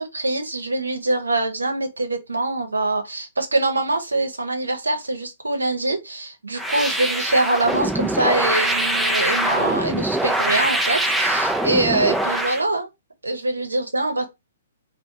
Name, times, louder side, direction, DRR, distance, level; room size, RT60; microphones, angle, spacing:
voice 1, 0.0-12.9 13.2-14.2, right 2 dB, 85° right, 0.8 m, -24 dB
sound 1, 6.6-12.6, right 1 dB, 5° right, 0.4 m, -23 dB
2.5 x 2.2 x 3.9 m
figure-of-eight pair, 125°, 0 cm